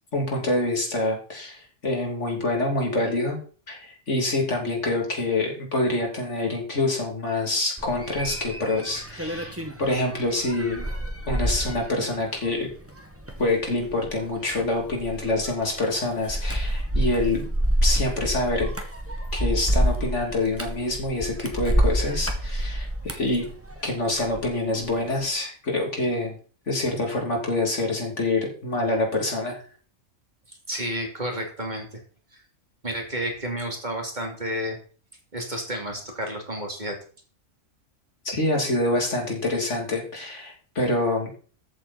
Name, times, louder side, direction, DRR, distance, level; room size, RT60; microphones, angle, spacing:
voice 1, 0.1-3.4 3.7-10.9 11.3-12.7 13.4-17.5 17.8-18.7 19.3-23.5 23.8-26.3 26.7-29.6 38.2-41.3, left 2 dB, 65° left, 1 dB, 3.3 m, -26 dB
sound 1, 7.8-24.5 24.8-25.3, right 1 dB, 10° right, 1.6 m, -28 dB
voice 2, 30.5-32.0 32.3-32.4 32.8-34.8 35.3-37.0, equal, 35° right, 2 dB, 2.8 m, -31 dB
14.0 x 8.2 x 4.2 m, 0.40 s
omnidirectional pair, 1.3 m